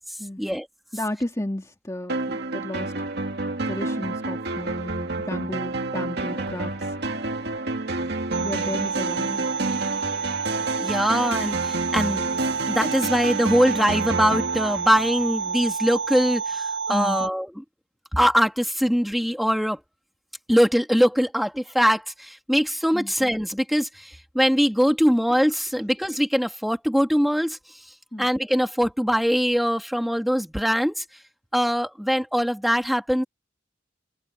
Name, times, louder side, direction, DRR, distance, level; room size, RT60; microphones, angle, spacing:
voice 1, 0.9-2.9 3.7-6.9 8.4-9.5 16.9-17.2 22.9-23.1 28.1-28.3, left 1 dB, 15° left, 2.2 m, -33 dB
sound 1, 2.1-15.6, right 2 dB, 60° right, 2.6 m, -29 dB
sound 2, 8.3-17.3, right 5 dB, 75° right, 7.3 m, -29 dB
voice 2, 10.8-12.3 12.7-17.6 18.1-19.8 20.5-27.6 28.2-31.0 31.5-33.2, equal, ahead, 2.9 m, -22 dB
open air
head